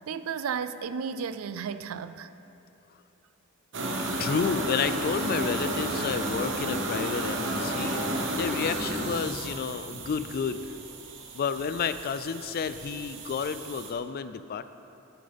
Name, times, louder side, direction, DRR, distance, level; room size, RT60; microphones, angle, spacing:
voice 1, 0.1-2.3, right 6 dB, 90° right, 12 dB, 0.4 m, -33 dB
sound 1, 3.7-13.9, right 1 dB, 60° right, 1.1 m, -32 dB
voice 2, 4.2-8.0 8.3-10.7 11.3-14.7, left 6 dB, 45° left, 12 dB, 0.3 m, -31 dB
11.5 x 9.2 x 3.5 m, 2.9 s
head